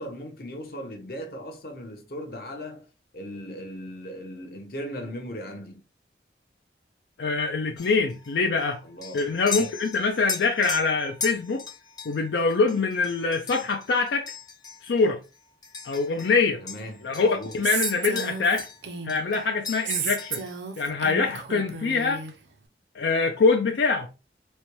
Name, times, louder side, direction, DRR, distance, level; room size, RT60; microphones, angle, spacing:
voice 1, 0.0-2.9 3.1-5.8 8.8-9.3 9.6-9.7 16.2-17.6, equal, 55° left, 0.9 m, -38 dB
voice 2, 7.2-8.8 9.1-11.6 12.1-14.3 14.8-15.2 15.8-16.6 17.0-18.7 19.0-20.4 20.8-22.3 22.9-24.1, left 4 dB, 80° left, 0.4 m, -24 dB
sound 1, 7.8-16.4 16.7-18.8 19.1-20.6, left 5 dB, 25° left, 0.6 m, -38 dB
Female speech woman speaking, 17.6-19.4 19.9-22.3, right 6 dB, 90° right, 0.6 m, -32 dB
4.2 x 2.2 x 3.0 m
head